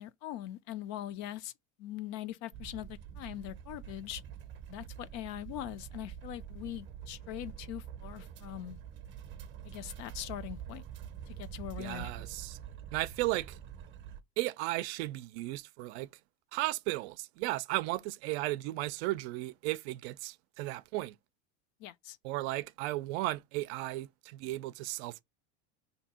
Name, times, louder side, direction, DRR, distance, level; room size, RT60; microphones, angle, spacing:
voice 1, 0.0-1.5 1.8-4.2 4.7-8.8 9.6-10.8 11.3-12.1 21.8-22.2, left 13 dB, 55° left, 0.5 m, -42 dB
sound 1, 2.5-14.2, right 9 dB, 35° right, 0.6 m, -46 dB
voice 2, 11.8-12.6 12.9-13.6 14.4-16.1 16.5-21.2 22.2-25.2, right 18 dB, 75° right, 0.5 m, -35 dB
2.8 x 2.6 x 4.2 m
supercardioid pair, 125°, 33 cm